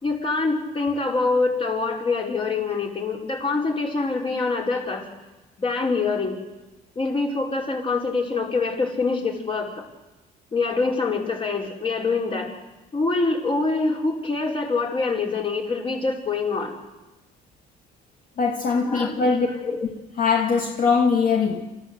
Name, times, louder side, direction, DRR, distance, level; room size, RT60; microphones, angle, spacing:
voice 1, 0.0-5.0 5.6-6.4 6.9-9.8 10.5-12.5 12.9-16.7 18.8-19.8, left 3 dB, 30° left, 5.0 m, -25 dB
voice 2, 18.4-19.5 20.2-21.6, left 5 dB, 55° left, 2.5 m, -21 dB
28.5 x 14.5 x 8.2 m
cardioid pair, 110°, 17 cm